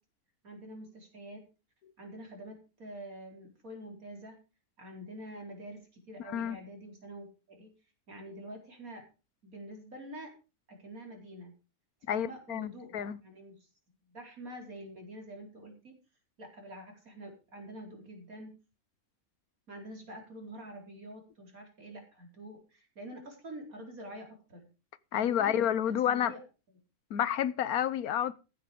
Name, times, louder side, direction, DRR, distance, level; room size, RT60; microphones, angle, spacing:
voice 1, 0.4-1.4 2.0-4.4 4.8-7.7 8.1-9.0 9.4-10.3 10.7-11.5 12.1-13.6 14.1-15.9 16.4-18.5 19.7-24.7 25.1-26.4, right 1 dB, 70° right, 4.7 m, -46 dB
voice 2, 6.3-6.6 12.1-13.2 25.1-26.3 27.1-28.3, left 10 dB, 80° left, 1.3 m, -30 dB
15.0 x 8.6 x 5.2 m
omnidirectional pair, 1.6 m